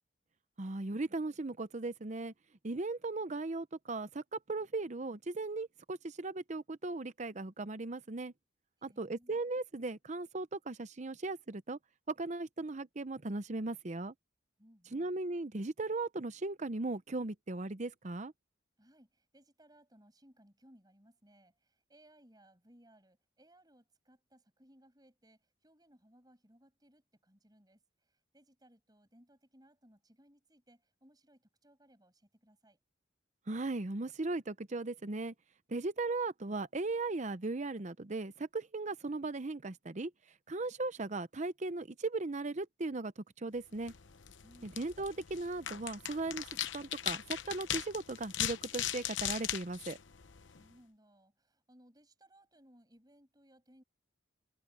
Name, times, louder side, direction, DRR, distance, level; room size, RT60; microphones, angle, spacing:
voice 1, 0.6-2.3 2.6-8.3 8.8-11.8 12.1-14.1 14.9-18.3 33.5-35.3 35.7-40.1 40.5-43.9 44.6-46.5 46.7-50.0, right 2 dB, 40° right, 0.7 m, -37 dB
voice 2, 8.8-9.4 14.6-15.1 18.8-32.8 44.4-44.8 50.5-53.8, right 1 dB, 20° right, 7.6 m, -64 dB
sound 1, 43.8-50.7, left 11 dB, 70° left, 0.9 m, -39 dB
head